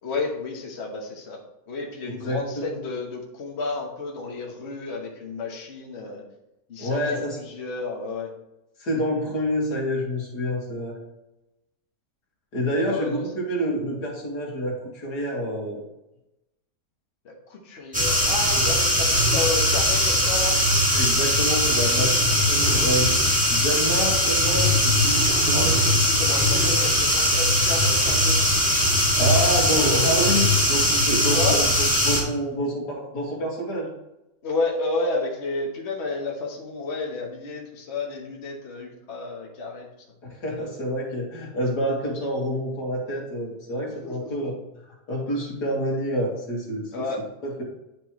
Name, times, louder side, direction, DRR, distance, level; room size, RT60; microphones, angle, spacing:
voice 1, 0.0-1.4 1.7-6.2 6.7-8.3 12.8-13.3 17.2-20.6 25.5-28.4 31.3-31.6 34.4-39.9 44.0-44.3 46.9-47.2, left 3 dB, 45° left, -1 dB, 1.5 m, -31 dB
voice 2, 2.1-2.8 6.8-7.4 8.8-11.0 12.5-15.8 20.9-25.7 29.2-33.9 40.2-44.6 45.1-47.0 47.4-47.6, equal, 80° left, -2 dB, 2.5 m, -28 dB
sound 1, 17.9-32.2, left 1 dB, 5° right, 1.9 m, -20 dB
9.8 x 5.4 x 3.1 m, 0.89 s
omnidirectional pair, 1.7 m